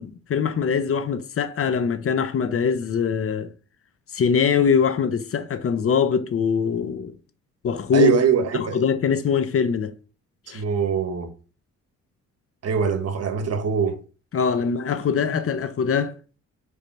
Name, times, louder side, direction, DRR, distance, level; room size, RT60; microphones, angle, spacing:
voice 1, 0.0-3.5 4.1-7.2 7.6-8.2 8.5-9.9 10.5-10.6 14.3-16.1, left 6 dB, 50° left, 0.8 m, -22 dB
voice 2, 7.9-8.8 10.5-11.3 12.6-14.0, right 6 dB, 55° right, 1.5 m, -22 dB
5.3 x 4.8 x 5.8 m
cardioid pair, 90°, 30 cm